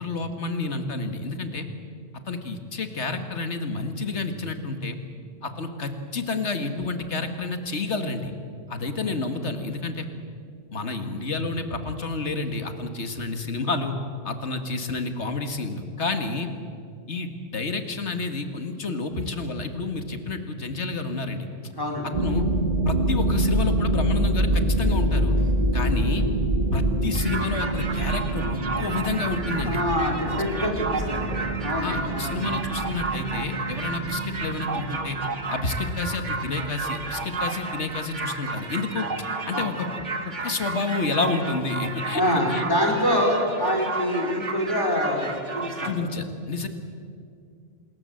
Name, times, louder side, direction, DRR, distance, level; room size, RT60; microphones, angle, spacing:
voice 1, 0.0-1.7 2.3-5.0 5.4-8.3 8.7-10.1 10.7-14.0 14.2-16.5 17.1-21.5 22.2-22.5 22.9-25.3 25.7-26.3 26.7-29.8 31.8-35.2 35.5-39.9 40.4-42.2 42.5-42.6 45.8-46.7, left 3 dB, 70° left, 7 dB, 2.2 m, -29 dB
voice 2, 21.8-22.1 29.7-32.5 39.5-39.6 42.1-45.9, equal, 20° left, 0 dB, 4.4 m, -25 dB
sound 1, 22.1-38.0, right 1 dB, 40° right, 1.9 m, -26 dB
sound 2, 27.1-45.9, right 3 dB, 85° right, 2.3 m, -32 dB
27.0 x 21.0 x 7.9 m, 2.3 s
omnidirectional pair, 1.2 m